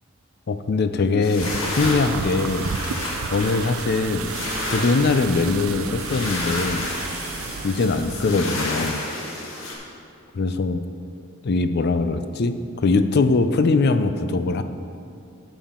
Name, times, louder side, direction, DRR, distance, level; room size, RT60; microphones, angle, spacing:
voice 1, 0.5-2.7 3.2-4.3 4.7-6.8 7.6-9.1 10.3-10.8 11.4-14.6, left 3 dB, 50° left, 10 dB, 0.4 m, -22 dB
sound 1, 1.2-9.7, left 2 dB, 80° left, 1.6 m, -31 dB
sound 2, 1.4-8.4, right 6 dB, 90° right, 0.4 m, -32 dB
11.5 x 7.2 x 3.7 m, 2.5 s
head